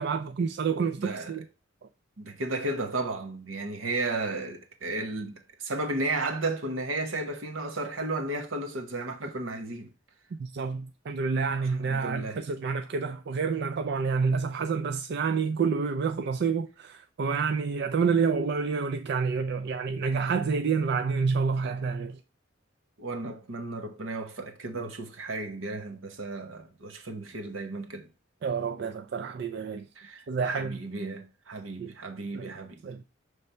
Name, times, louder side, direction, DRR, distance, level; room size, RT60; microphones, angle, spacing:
voice 1, 0.0-1.4 10.4-22.2 28.4-29.9 30.3-30.8 31.8-31.9 32.3-32.5 32.8-33.0, right 5 dB, 55° right, 0.4 m, -28 dB
voice 2, 1.0-1.4 2.2-9.9 11.6-12.4 23.0-28.1 30.0-32.8, right 2 dB, 90° right, 1.1 m, -34 dB
6.8 x 3.3 x 4.3 m
head